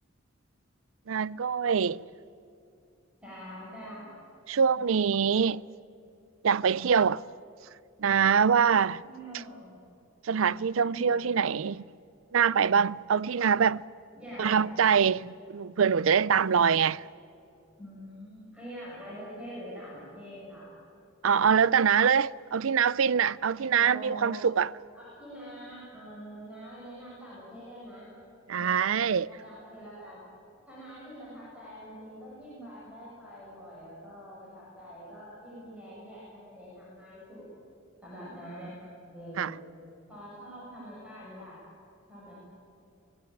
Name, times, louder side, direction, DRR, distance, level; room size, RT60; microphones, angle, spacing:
voice 1, 1.1-2.0 4.5-5.6 6.4-7.2 8.0-9.0 10.2-11.9 12.3-13.8 14.4-17.0 21.2-24.7 28.5-29.3 39.4-39.5, right 7 dB, 80° right, 0.5 m, -24 dB
voice 2, 3.2-4.1 4.8-4.9 9.0-9.7 10.9-11.3 14.2-15.2 17.8-20.7 23.7-24.4 24.9-28.1 28.5-28.8 29.3-30.3 30.7-37.4 38.0-38.7 39.1-39.6 40.1-41.6 42.1-42.4, equal, 5° right, 7.4 m, -45 dB
24.5 x 19.5 x 9.2 m
head